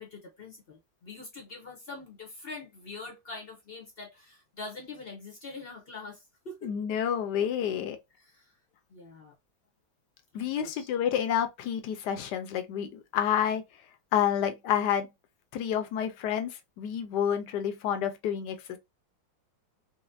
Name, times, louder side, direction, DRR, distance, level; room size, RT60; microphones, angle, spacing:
voice 1, 0.0-6.7 8.2-8.5 8.9-9.3 10.3-10.9, left 3 dB, 50° left, 0.7 m, -44 dB
voice 2, 6.6-8.0 10.3-13.6 14.1-15.1 15.5-18.8, left 9 dB, 75° left, 1.2 m, -29 dB
4.1 x 2.1 x 2.6 m
omnidirectional pair, 2.0 m